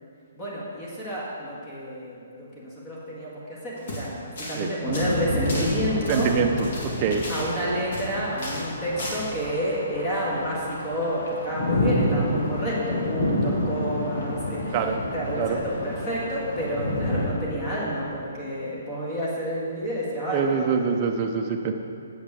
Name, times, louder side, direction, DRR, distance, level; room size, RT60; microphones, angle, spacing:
voice 1, 0.4-2.1 2.5-6.3 7.3-14.7 15.1-20.8, equal, 20° left, -7 dB, 1.8 m, -29 dB
sound 1, 3.8-4.1 4.4-4.6 4.9-8.1 8.4-8.7 9.0-9.2, left 1 dB, 55° left, 2.1 m, -35 dB
sound 2, 4.8-17.3, left 1 dB, 75° left, 1.7 m, -29 dB
voice 2, 6.1-7.3 14.7-15.0 15.4-15.6 20.3-21.7, right 6 dB, 25° right, 3 dB, 0.7 m, -25 dB
8.0 x 5.1 x 7.5 m, 2.6 s
hypercardioid pair, 165°, 0 cm